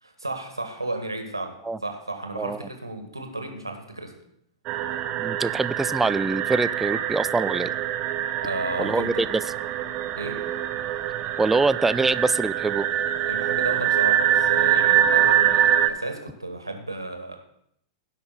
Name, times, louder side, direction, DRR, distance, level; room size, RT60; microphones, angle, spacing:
voice 1, 0.0-1.6 1.8-4.1 8.4-9.3 10.1-10.4 13.2-17.3, right 2 dB, 85° right, 4 dB, 1.7 m, -33 dB
sound 1, 4.7-15.9, right 11 dB, 35° right, 0.7 m, -24 dB
voice 2, 5.2-7.7 8.8-9.4 11.4-12.9, right 3 dB, 10° right, 16 dB, 0.3 m, -24 dB
17.0 x 5.7 x 4.1 m, 0.70 s
figure-of-eight pair, 100°, 2 cm